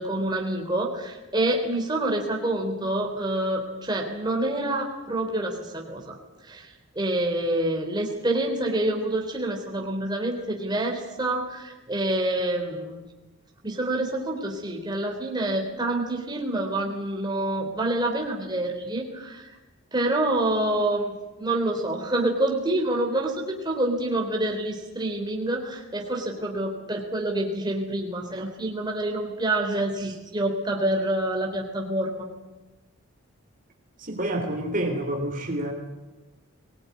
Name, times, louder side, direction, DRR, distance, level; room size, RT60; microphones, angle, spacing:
voice 1, 0.0-6.2 6.4-13.1 13.6-19.5 19.9-32.3, right 1 dB, 20° right, 1 dB, 3.6 m, -27 dB
voice 2, 34.0-35.7, right 1 dB, 40° right, 3 dB, 3.5 m, -28 dB
23.0 x 20.0 x 9.7 m, 1.1 s
head